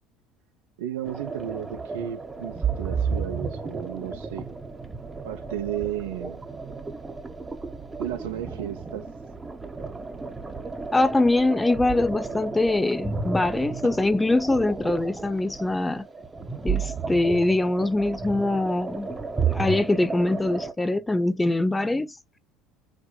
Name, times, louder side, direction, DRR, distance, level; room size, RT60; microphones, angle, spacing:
voice 1, 0.8-4.6 5.2-6.4 8.0-9.1, right 11 dB, 70° right, 0.6 m, -33 dB
sound 1, 1.0-20.7, right 5 dB, 20° right, 0.7 m, -32 dB
voice 2, 10.9-16.1 16.6-19.1 19.5-22.2, left 2 dB, 10° left, 0.4 m, -23 dB
4.0 x 2.1 x 2.8 m
figure-of-eight pair, 65°, 0 cm